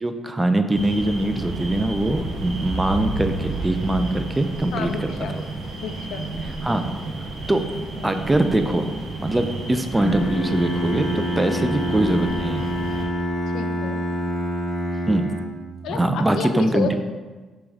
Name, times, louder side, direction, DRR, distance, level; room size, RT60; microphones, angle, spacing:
voice 1, 0.0-5.1 6.6-6.9 7.5-7.6 8.0-8.9 9.2-12.7 15.1-15.3 15.9-17.0, right 1 dB, 15° right, 7 dB, 0.3 m, -22 dB
sound 1, 0.7-13.0, right 2 dB, 70° right, 0.9 m, -32 dB
voice 2, 4.7-5.4 5.8-6.3 7.9-8.2 11.4-11.5 13.5-14.0 15.8-17.0, left 6 dB, 80° left, 7 dB, 0.4 m, -30 dB
Bowed string instrument, 9.9-15.8, equal, 30° left, 0.8 m, -27 dB
3.5 x 3.0 x 4.7 m, 1.3 s
cardioid pair, 90°, 0 cm